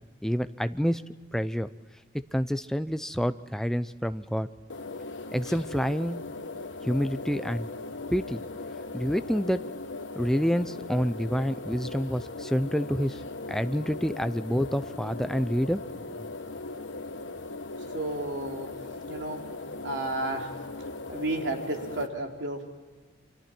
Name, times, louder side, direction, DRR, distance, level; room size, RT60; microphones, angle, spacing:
voice 1, 0.2-1.0 1.3-1.7 2.3-4.5 5.3-6.2 6.8-7.7 8.1-8.4 8.9-9.6 10.1-13.2 13.5-15.8 16.1-16.2, equal, 5° left, 11 dB, 0.6 m, -28 dB
sound 1, 4.7-22.1, left 3 dB, 90° left, 1.2 m, -39 dB
voice 2, 17.9-18.7 19.1-19.4 19.8-20.5 21.1-22.6, right 2 dB, 85° right, 2 dB, 3.3 m, -32 dB
29.0 x 25.0 x 4.5 m, 1.4 s
head